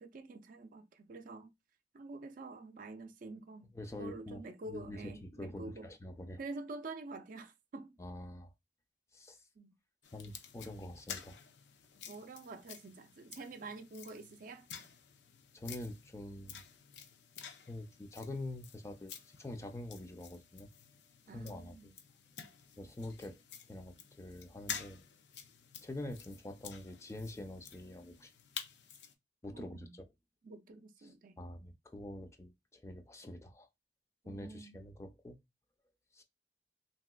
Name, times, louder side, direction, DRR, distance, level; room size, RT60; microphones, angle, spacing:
voice 1, 0.0-1.5 1.9-5.9 6.4-8.0 9.6-9.7 12.1-14.7 21.3-21.9 29.5-30.0 30.4-31.4 34.2-34.9, right 3 dB, 50° right, 0.4 m, -47 dB
voice 2, 3.7-4.4 4.7-6.4 8.0-8.5 9.1-9.5 10.1-11.4 15.5-16.6 17.7-20.7 21.3-21.9 22.8-23.4 23.7-25.0 25.8-28.3 29.4-30.1 31.0-33.7 34.2-35.4 36.1-36.2, left 1 dB, 15° left, 0.4 m, -46 dB
sound 1, 10.0-29.1, left 7 dB, 75° left, 0.5 m, -50 dB
3.2 x 2.8 x 2.2 m
head